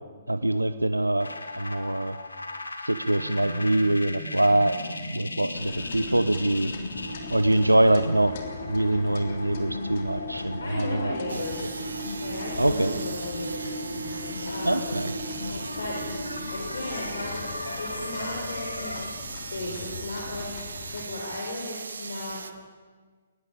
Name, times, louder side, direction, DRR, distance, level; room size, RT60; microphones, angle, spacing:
voice 1, 0.3-1.3 1.6-2.2 2.8-4.8 5.1-6.7 7.3-8.4 8.7-11.4 12.6-13.0 14.6-15.1, right 1 dB, 85° right, 13 dB, 0.8 m, -24 dB
sound 1, 1.2-19.1, left 1 dB, 80° left, 2.9 m, -36 dB
sound 2, 5.5-21.0, left 5 dB, 45° left, 3.4 m, -41 dB
voice 2, 10.6-11.8 12.2-13.8 14.5-15.0 15.8-16.0 16.5-20.5 20.9-22.4, left 2 dB, 65° left, -1 dB, 5.2 m, -36 dB
sound 3, 11.3-22.5, right 4 dB, 65° right, 1.6 m, -39 dB
22.0 x 20.0 x 8.7 m, 1.5 s
figure-of-eight pair, 125°, 0 cm